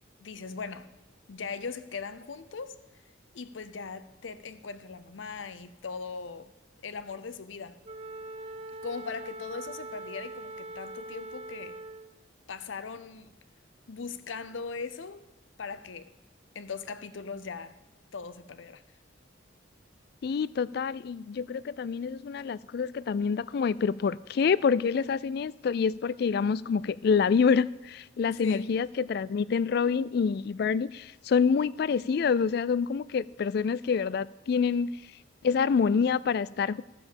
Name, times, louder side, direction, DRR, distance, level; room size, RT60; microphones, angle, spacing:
voice 1, 0.2-0.9 1.3-2.8 3.3-6.5 6.8-7.8 8.8-11.8 12.5-13.3 13.9-15.2 15.6-16.1 16.5-17.8 18.1-18.8 28.4-28.7, left 5 dB, 80° left, 0.7 m, -39 dB
Wind instrument woodwind instrument, 7.8-12.2, right 2 dB, 30° right, 0.6 m, -42 dB
voice 2, 20.2-34.9 35.4-36.8, left 6 dB, 55° left, 0.3 m, -27 dB
13.5 x 7.0 x 7.1 m
head